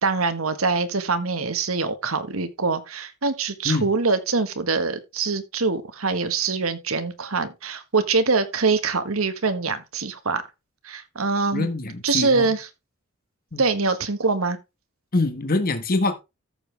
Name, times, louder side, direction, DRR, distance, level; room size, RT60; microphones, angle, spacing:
voice 1, 0.0-10.4 10.8-11.7 12.0-12.7 13.6-14.6, right 4 dB, 75° right, 1.5 m, -24 dB
voice 2, 11.5-12.5 13.5-13.6 15.1-16.1, left 2 dB, 45° left, 1.5 m, -24 dB
14.0 x 7.0 x 3.4 m
head